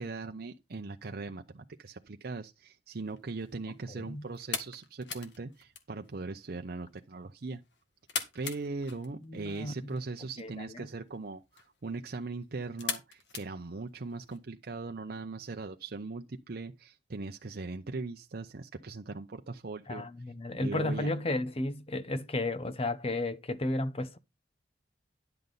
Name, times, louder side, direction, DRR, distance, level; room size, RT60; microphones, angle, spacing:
voice 1, 0.0-7.6 8.3-20.1 20.6-21.1, right 3 dB, 55° right, 0.7 m, -40 dB
sound 1, 3.0-14.4, left 6 dB, 75° left, 1.7 m, -43 dB
voice 2, 9.2-9.7 10.4-10.7 19.9-24.2, left 2 dB, 35° left, 0.8 m, -33 dB
11.0 x 6.7 x 3.9 m
head